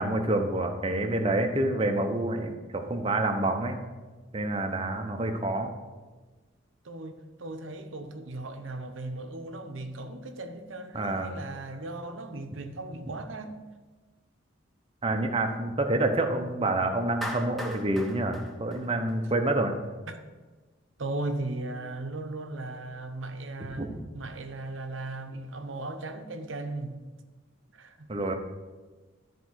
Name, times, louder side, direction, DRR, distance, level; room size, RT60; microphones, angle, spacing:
voice 1, 0.0-3.8 4.3-5.7 10.9-11.3 15.0-19.8 23.8-24.0 28.1-28.3, right 2 dB, 30° right, 0.9 m, -28 dB
voice 2, 6.8-13.6 20.1-20.2 21.0-27.0 27.7-28.1, right 2 dB, 75° right, 0.9 m, -37 dB
Clapping, 17.2-19.5, equal, ahead, 0.9 m, -39 dB
12.5 x 4.6 x 6.4 m
head